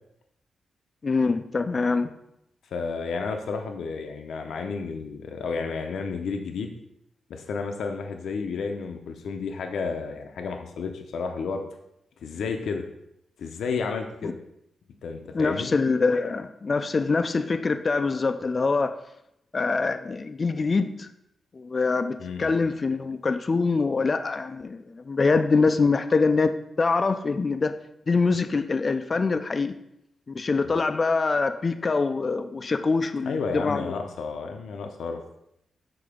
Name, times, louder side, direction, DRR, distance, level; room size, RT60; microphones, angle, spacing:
voice 1, 1.0-2.1 14.2-14.3 15.3-18.9 19.5-21.1 21.6-27.7 28.1-29.7 30.3-33.9, left 4 dB, 35° left, 9 dB, 0.4 m, -24 dB
voice 2, 2.7-6.7 7.3-11.6 12.2-12.8 13.4-14.4 15.0-15.7 22.2-22.5 30.6-30.8 33.2-35.2, left 5 dB, 85° left, 4 dB, 0.6 m, -31 dB
6.9 x 3.8 x 5.0 m, 0.81 s
wide cardioid pair, 130°, 0 cm